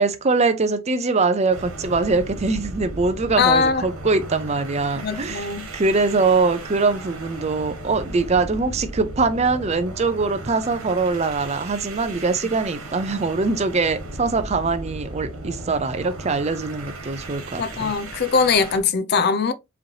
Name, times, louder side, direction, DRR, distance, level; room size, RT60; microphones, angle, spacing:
voice 1, 0.0-17.9, right 3 dB, 30° right, 0.5 m, -22 dB
sound 1, 1.5-18.9, right 2 dB, 85° right, 1.5 m, -36 dB
voice 2, 3.4-3.8 5.0-5.7 17.6-19.5, left 5 dB, 45° left, 0.5 m, -21 dB
4.9 x 3.2 x 2.8 m
head